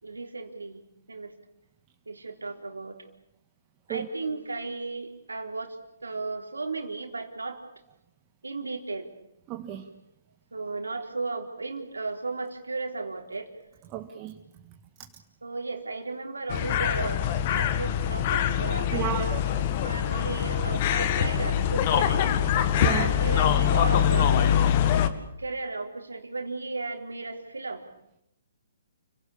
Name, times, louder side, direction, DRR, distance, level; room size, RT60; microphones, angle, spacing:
voice 1, 0.0-1.3 2.1-3.0 3.9-5.8 6.0-7.6 8.4-9.1 9.9-10.0 10.5-13.5 15.4-19.5 19.8-22.3 22.9-24.7 25.4-27.8, right 3 dB, 90° right, 4 dB, 4.0 m, -35 dB
voice 2, 9.5-9.9 13.9-14.3 18.9-19.4 22.8-23.1, right 11 dB, 25° right, 4 dB, 1.8 m, -32 dB
sound 1, 16.5-25.1, left 9 dB, 40° left, 2.0 m, -24 dB
29.5 x 17.0 x 8.7 m, 0.80 s
figure-of-eight pair, 135°, 0 cm